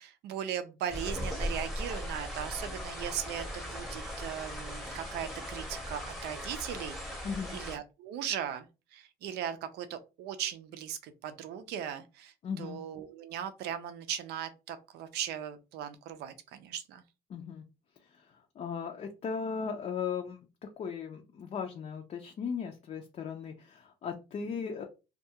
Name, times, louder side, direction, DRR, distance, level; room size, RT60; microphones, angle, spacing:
voice 1, 0.0-7.3 7.5-8.7 8.9-17.0, right 9 dB, 80° right, 0.5 m, -38 dB
sound 1, 0.9-7.8, equal, ahead, 0.8 m, -38 dB
voice 2, 7.2-7.6 12.4-12.8 17.3-17.6 18.2-18.3 18.6-20.4 20.8-24.8, left 6 dB, 40° left, 0.4 m, -37 dB
2.3 x 2.2 x 2.8 m
cardioid pair, 110°, 17 cm